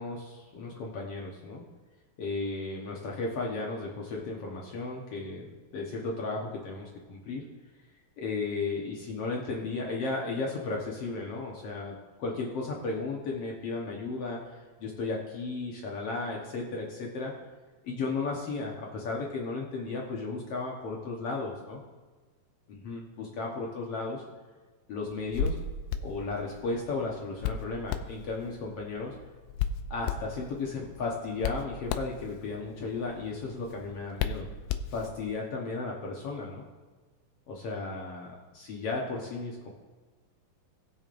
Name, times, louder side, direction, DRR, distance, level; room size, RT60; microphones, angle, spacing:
voice 1, 0.0-1.6 2.2-7.4 8.2-14.4 14.8-17.3 17.8-21.8 22.7-24.2 24.9-25.6 26.0-29.1 29.9-34.5 34.9-36.6 37.5-39.7, left 3 dB, 60° left, -2 dB, 1.6 m, -34 dB
Hands, 25.1-35.4, left 6 dB, 85° left, 2.3 m, -36 dB
19.0 x 7.0 x 2.6 m, 1.3 s
omnidirectional pair, 3.9 m